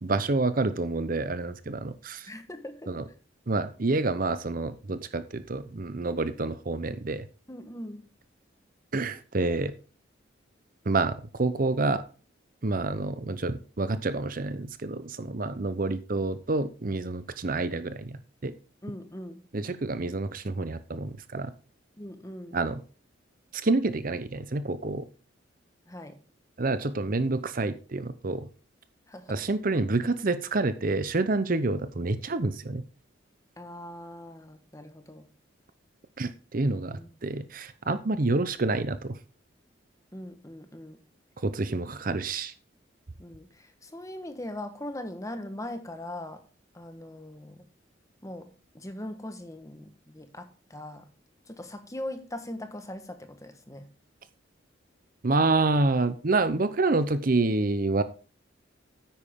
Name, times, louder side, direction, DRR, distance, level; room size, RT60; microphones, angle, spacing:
voice 1, 0.0-2.3 2.9-3.0 3.5-7.3 8.9-9.7 10.9-12.0 12.6-18.5 19.5-21.5 22.5-22.8 23.5-25.1 26.6-28.5 29.3-32.8 36.2-39.2 41.4-42.5 55.2-58.0, right 3 dB, 45° right, 0.7 m, -28 dB
voice 2, 2.3-3.1 7.5-8.1 18.8-19.4 22.0-22.6 25.9-26.2 29.1-29.4 33.6-35.3 36.6-37.1 37.3-37.5 40.1-41.0 43.2-46.4 46.7-47.6 48.2-51.1 51.5-53.9, left 1 dB, 15° left, 1.3 m, -41 dB
10.0 x 8.8 x 3.6 m
head